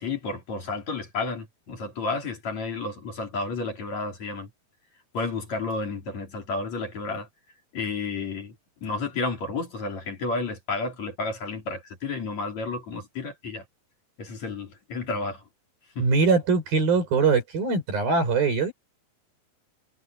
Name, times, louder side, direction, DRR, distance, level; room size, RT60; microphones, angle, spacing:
voice 1, 0.0-4.5 5.1-7.3 7.7-8.6 8.8-13.6 14.2-15.5 15.9-16.1, left 3 dB, 50° left, 5.0 m, -31 dB
voice 2, 16.0-18.7, right 4 dB, 75° right, 8.8 m, -22 dB
omnidirectional pair, 4.2 m